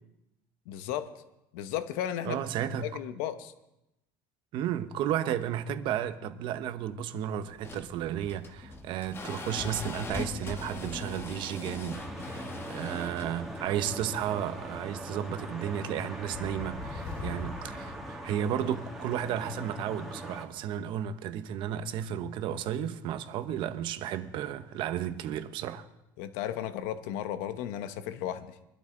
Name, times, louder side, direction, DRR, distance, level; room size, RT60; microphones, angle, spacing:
voice 1, 0.7-1.2 1.5-2.5 2.8-3.5 26.2-28.6, left 11 dB, 80° left, 1.0 m, -35 dB
voice 2, 2.2-3.0 4.5-12.4 12.7-25.9, right 10 dB, 55° right, 1.0 m, -33 dB
sound 1, 7.5-15.4, left 3 dB, 25° left, 1.5 m, -41 dB
sound 2, 11.9-20.5, right 1 dB, 5° right, 2.2 m, -41 dB
sound 3, 16.1-18.8, left 3 dB, 65° left, 4.0 m, -41 dB
23.0 x 12.0 x 3.8 m
cardioid pair, 135°, 10 cm